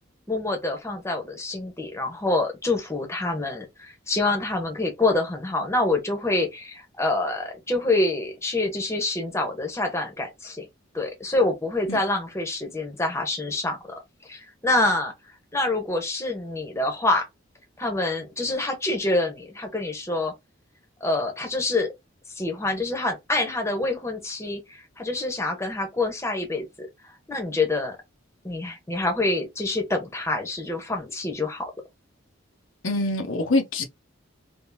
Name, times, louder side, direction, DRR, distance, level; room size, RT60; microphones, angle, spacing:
voice 1, 0.3-10.7 10.9-15.1 15.5-17.3 17.8-20.3 21.0-21.9 22.3-26.9 27.3-28.0 28.4-31.7, left 2 dB, 15° left, 0.9 m, -26 dB
voice 2, 32.8-33.8, left 2 dB, 85° left, 0.9 m, -24 dB
3.6 x 2.6 x 2.6 m
head